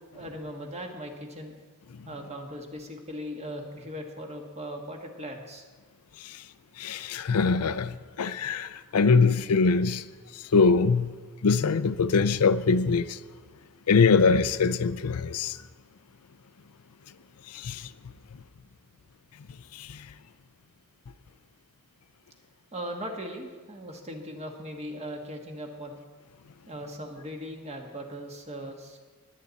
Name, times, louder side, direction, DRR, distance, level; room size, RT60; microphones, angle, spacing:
voice 1, 0.1-1.6 2.0-5.6 22.7-26.0 26.7-29.0, equal, 30° right, 1.5 m, -39 dB
voice 2, 6.8-10.1 10.3-11.1 11.4-13.2 13.9-15.6 17.5-17.9 19.7-20.1, left 4 dB, 80° left, 0.5 m, -23 dB
21.0 x 8.4 x 4.1 m
head